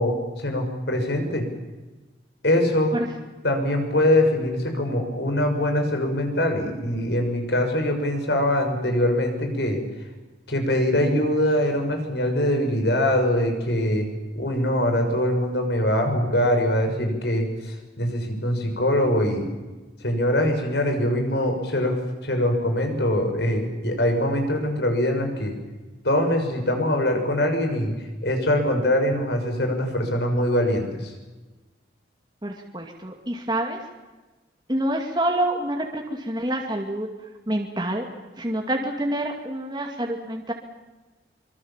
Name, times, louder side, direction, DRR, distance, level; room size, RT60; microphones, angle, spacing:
voice 1, 0.0-1.4 2.4-2.9 3.4-9.8 10.5-14.1 14.3-19.5 20.0-22.0 22.2-25.5 26.0-27.9 28.2-31.1, left 1 dB, 70° left, 4 dB, 6.3 m, -23 dB
voice 2, 32.4-33.8 34.7-37.1 37.5-38.1 38.4-40.5, right 1 dB, 25° right, 1 dB, 2.4 m, -27 dB
25.0 x 24.5 x 7.4 m, 1.2 s
head